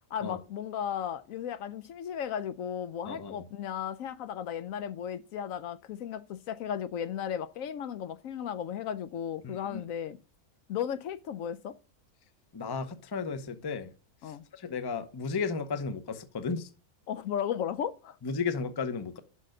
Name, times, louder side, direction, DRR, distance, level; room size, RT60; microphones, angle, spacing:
voice 1, 0.1-10.2 10.7-11.7 14.2-14.4 17.1-18.2, left 9 dB, 70° left, 0.9 m, -35 dB
voice 2, 3.1-3.4 9.4-9.8 12.5-13.9 14.5-16.7 18.2-19.2, left 5 dB, 25° left, 0.5 m, -34 dB
6.5 x 5.8 x 6.4 m
omnidirectional pair, 1.5 m